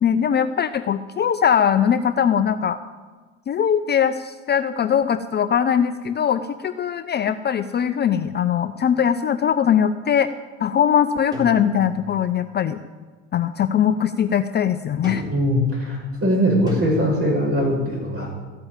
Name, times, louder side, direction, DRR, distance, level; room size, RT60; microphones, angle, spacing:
voice 1, 0.0-2.8 3.5-10.3 10.6-12.8 13.3-15.2, left 8 dB, 25° left, 11 dB, 0.6 m, -21 dB
sound 1, 11.3-12.3 15.0-15.7 16.7-16.8, left 1 dB, 10° right, 3.7 m, -35 dB
voice 2, 15.2-18.3, equal, 35° right, 0 dB, 6.1 m, -21 dB
14.0 x 8.8 x 9.0 m, 1.4 s
figure-of-eight pair, 65°, 38 cm